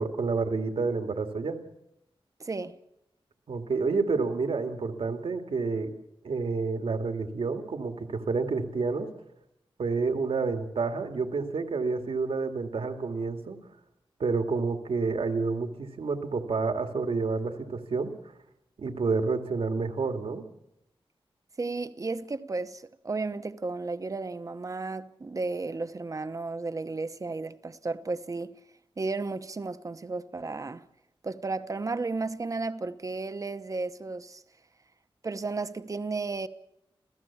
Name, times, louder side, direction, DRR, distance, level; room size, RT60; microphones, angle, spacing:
voice 1, 0.0-1.6 3.5-5.9 6.2-9.1 9.8-13.6 14.2-18.1 18.8-20.4, right 4 dB, 80° right, 2.1 m, -29 dB
voice 2, 2.4-2.7 21.6-28.5 29.0-30.8 31.2-34.4 35.2-36.5, right 3 dB, 35° right, 0.9 m, -33 dB
27.0 x 16.0 x 7.2 m
wide cardioid pair, 135°, 10 cm